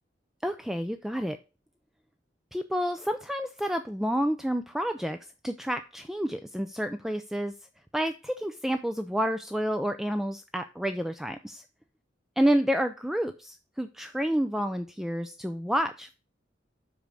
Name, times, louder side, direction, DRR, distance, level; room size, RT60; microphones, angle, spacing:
voice 1, 0.4-1.4 2.5-5.2 5.4-7.5 7.9-11.6 12.4-16.1, equal, ahead, 8 dB, 0.3 m, -29 dB
6.2 x 5.1 x 6.8 m, 0.31 s
head